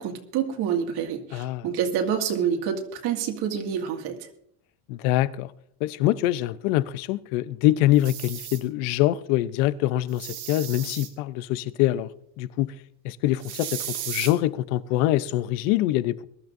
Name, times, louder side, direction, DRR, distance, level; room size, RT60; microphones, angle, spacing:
voice 1, 0.0-4.2, right 8 dB, 60° right, 2.2 m, -27 dB
voice 2, 1.3-1.7 4.9-5.5 5.8-12.1 12.4-12.7 13.0-16.3, left 15 dB, 75° left, 0.8 m, -24 dB
sound 1, 7.9-8.6 10.1-11.1 13.4-14.3, right 11 dB, 90° right, 2.5 m, -35 dB
22.0 x 12.5 x 2.6 m
supercardioid pair, 125°, 43 cm